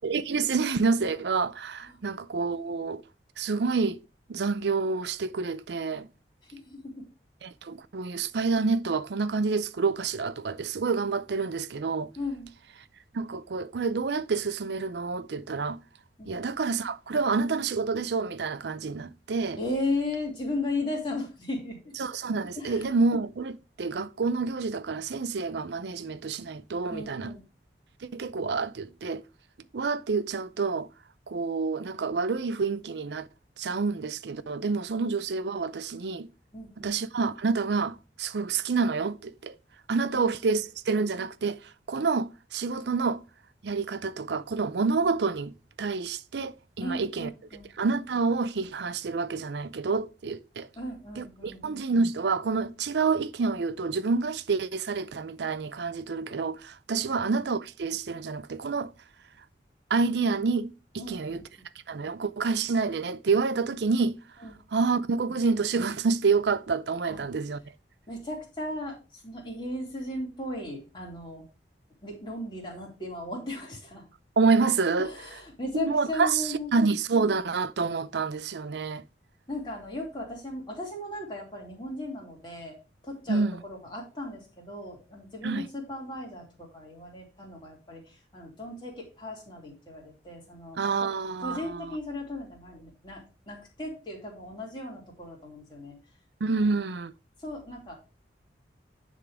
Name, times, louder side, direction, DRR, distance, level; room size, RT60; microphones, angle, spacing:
voice 1, 0.0-3.0 3.4-4.0 4.3-6.1 7.4-12.1 13.1-15.8 16.3-19.6 22.0-27.3 28.0-29.2 29.7-30.9 31.3-33.3 33.6-36.3 36.8-39.5 39.9-43.2 43.6-45.5 45.8-47.3 47.8-50.7 51.2-58.9 59.9-61.4 61.9-64.2 64.7-67.6 74.4-75.1 75.7-79.0 83.3-83.6 85.4-85.7 90.8-92.0 96.4-97.1, right 4 dB, 70° right, 0.5 m, -28 dB
voice 2, 6.5-7.0 12.2-12.5 16.2-16.6 19.6-21.9 22.6-22.9 26.9-27.4 36.5-36.9 40.1-40.6 46.8-47.7 50.8-51.6 61.0-61.7 64.4-64.5 67.1-67.3 68.1-71.4 72.0-74.0 75.0-76.7 79.5-82.8 83.0-91.1 91.4-96.0 96.6-96.7 97.4-97.9, left 2 dB, 25° left, 2.8 m, -36 dB
9.8 x 3.8 x 4.8 m
head